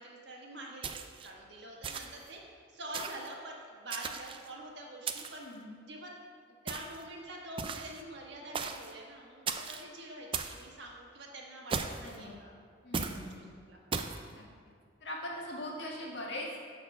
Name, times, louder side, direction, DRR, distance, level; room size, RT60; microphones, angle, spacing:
voice 1, 0.0-5.4 5.8-6.1 6.5-12.5 13.0-13.8, right 1 dB, 65° right, -1 dB, 1.4 m, -46 dB
sound 1, 0.8-1.3 1.8-2.3 2.9-3.3 3.9-4.5 5.1-5.5 6.7-7.0 7.6-8.0 8.5-8.9 9.5-9.8 10.3-10.6 11.7-12.2 12.9-13.2 13.9-14.2, right 5 dB, 25° right, 0.4 m, -37 dB
voice 2, 5.4-5.7 12.0-12.4 12.8-13.4 14.3-14.4 15.0-16.6, left 1 dB, 65° left, -2 dB, 1.6 m, -41 dB
12.5 x 4.3 x 5.3 m, 2.1 s
head